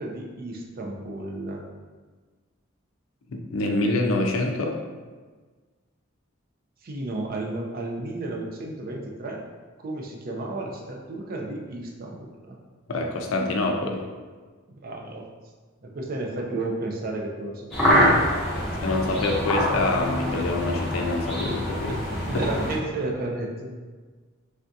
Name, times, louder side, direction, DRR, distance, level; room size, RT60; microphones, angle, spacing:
voice 1, 0.0-1.7 6.8-9.4 9.8-12.6 14.8-15.2 15.8-17.9 18.2-18.3 18.6-19.6 21.9-22.0 22.3-23.7, right 2 dB, 45° right, 0 dB, 0.4 m, -33 dB
voice 2, 3.3-4.8 12.9-14.0 17.9-18.1 18.8-22.0 22.3-22.4, left 2 dB, 90° left, 2 dB, 0.4 m, -26 dB
sound 1, 17.7-22.8, equal, ahead, 0.7 m, -25 dB
3.4 x 2.4 x 2.6 m, 1.4 s
head